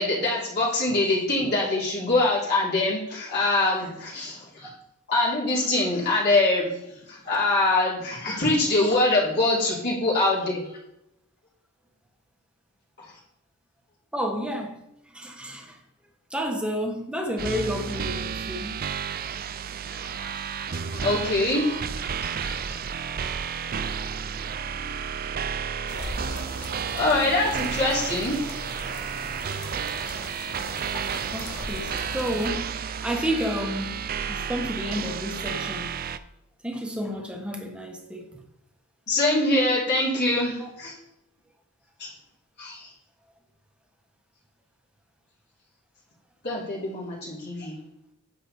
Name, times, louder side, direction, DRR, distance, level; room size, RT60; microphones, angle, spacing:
voice 1, 0.0-4.7 5.1-6.7 7.1-10.6 19.9-22.8 26.9-28.3 31.4-31.5 39.1-40.9 42.0-42.1 42.6-42.9 46.4-47.8, left 2 dB, 50° left, 3.3 m, -24 dB
voice 2, 14.1-14.8 15.1-15.8 16.3-18.8 24.6-25.3 31.3-33.9 34.3-36.1 36.6-38.4 40.6-40.7, equal, 5° right, 1.4 m, -31 dB
sound 1, 17.4-36.2, right 7 dB, 40° right, 0.5 m, -32 dB
sound 2, 25.9-32.5, left 2 dB, 70° left, 1.4 m, -39 dB
9.5 x 7.1 x 4.3 m
head